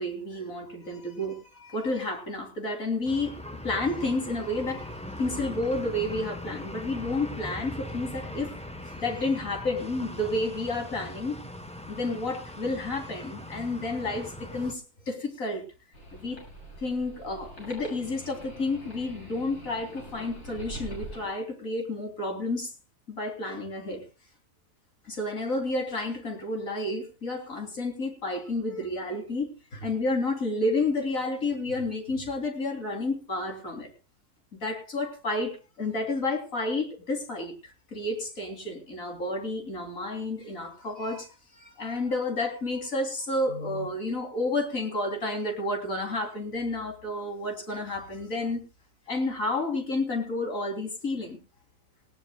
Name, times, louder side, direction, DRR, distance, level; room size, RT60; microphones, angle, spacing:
voice 1, 0.0-3.3 3.6-8.6 8.9-11.4 11.9-15.6 16.1-16.4 16.8-22.7 23.1-24.0 25.1-33.9 34.6-41.3 41.5-48.6 49.1-51.4, left 2 dB, 60° left, 3 dB, 3.8 m, -31 dB
sound 1, 3.0-14.7, left 1 dB, 5° left, 0.9 m, -40 dB
sound 2, 15.9-21.3, equal, 85° left, 8.2 m, -44 dB
19.0 x 18.0 x 2.3 m, 0.31 s
omnidirectional pair, 1.6 m